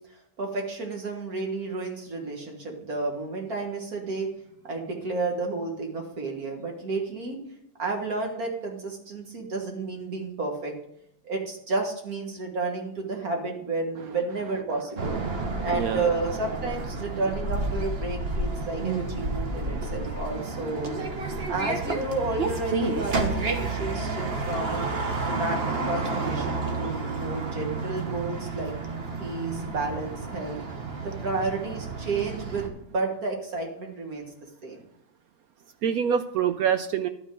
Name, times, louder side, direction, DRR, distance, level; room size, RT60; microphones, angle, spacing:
voice 1, 0.1-4.3 4.6-7.4 7.8-10.8 11.2-15.2 15.6-21.0 21.5-24.9 25.3-28.7 29.2-30.6 30.9-34.3 34.6-34.8, right 3 dB, 55° right, 2 dB, 2.0 m, -31 dB
sound 1, 15.0-32.7, right 3 dB, 40° right, 1.2 m, -30 dB
voice 2, 15.3-16.1 35.8-37.1, right 8 dB, 70° right, 10 dB, 0.8 m, -26 dB
11.5 x 4.5 x 7.6 m, 0.76 s
omnidirectional pair, 1.9 m